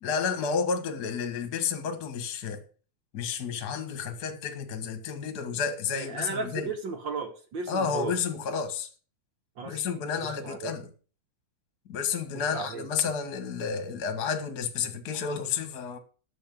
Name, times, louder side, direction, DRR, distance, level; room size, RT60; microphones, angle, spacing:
voice 1, 0.0-2.6 3.1-6.7 7.7-8.9 9.6-10.9 11.9-16.0, left 6 dB, 40° left, 1.6 m, -31 dB
voice 2, 5.9-8.1 9.6-9.8 10.2-10.7 12.3-12.9, right 4 dB, 55° right, 1.3 m, -35 dB
10.0 x 7.6 x 6.7 m
omnidirectional pair, 3.7 m